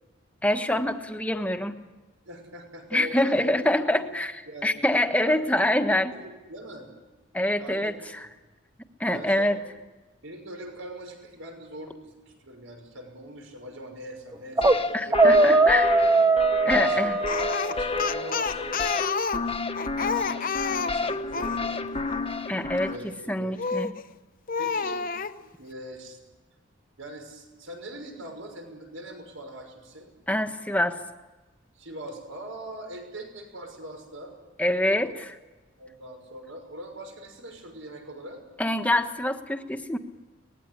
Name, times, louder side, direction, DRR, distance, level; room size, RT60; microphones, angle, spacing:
voice 1, 0.4-1.7 2.9-4.4 4.6-6.1 7.3-7.9 9.0-9.6 14.9-15.9 16.6-17.2 22.5-22.9 23.3-23.9 30.3-31.0 34.6-35.4 38.6-40.0, left 1 dB, 5° left, 6 dB, 1.4 m, -25 dB
voice 2, 2.3-4.1 4.5-4.8 5.2-6.9 7.6-8.0 9.1-9.6 10.2-15.7 16.6-19.0 20.0-21.9 22.8-23.6 24.6-25.1 25.3-26.2 27.0-30.1 31.7-34.3 35.8-38.4, right 1 dB, 80° right, 4 dB, 6.1 m, -41 dB
sound 1, 14.3-14.8 15.1-17.9, right 2 dB, 15° right, 0.7 m, -20 dB
sound 2, 14.6-23.0, left 3 dB, 30° left, 1.3 m, -31 dB
Speech, 17.3-21.6 23.6-24.0 24.5-25.4, left 5 dB, 45° left, 0.9 m, -29 dB
24.5 x 20.5 x 9.9 m, 1.2 s
head